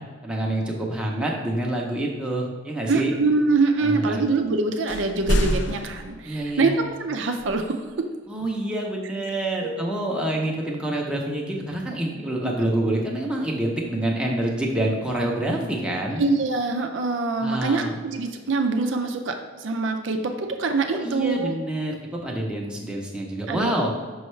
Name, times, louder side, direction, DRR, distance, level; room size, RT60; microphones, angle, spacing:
voice 1, 0.2-3.1 3.8-4.2 6.3-6.8 8.3-16.2 17.4-18.0 21.0-23.9, right 1 dB, 5° right, -2 dB, 0.7 m, -27 dB
voice 2, 2.9-7.8 9.6-9.8 12.6-12.7 16.2-21.6 23.5-23.9, right 3 dB, 65° right, 5 dB, 0.5 m, -24 dB
sound 1, 4.9-6.5 7.4-7.5, equal, 60° left, 0.5 m, -26 dB
5.6 x 5.5 x 3.2 m, 1.5 s
head